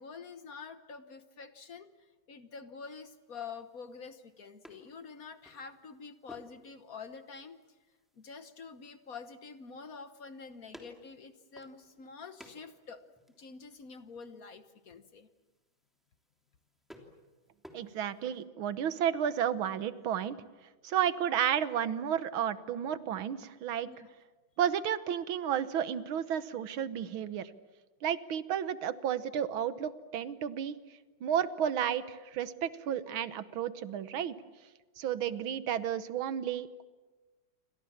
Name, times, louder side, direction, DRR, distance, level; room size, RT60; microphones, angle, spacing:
voice 1, 0.0-7.6 8.2-13.0 13.4-15.3 23.9-24.1, left 5 dB, 50° left, 10 dB, 1.4 m, -47 dB
sound 1, 2.9-18.4, equal, ahead, 3.0 m, -59 dB
voice 2, 17.7-20.4 20.8-23.9 24.6-27.5 28.0-30.8 31.2-34.4 35.0-36.8, right 9 dB, 85° right, 14 dB, 1.9 m, -32 dB
29.0 x 25.0 x 7.2 m, 1.2 s
omnidirectional pair, 2.2 m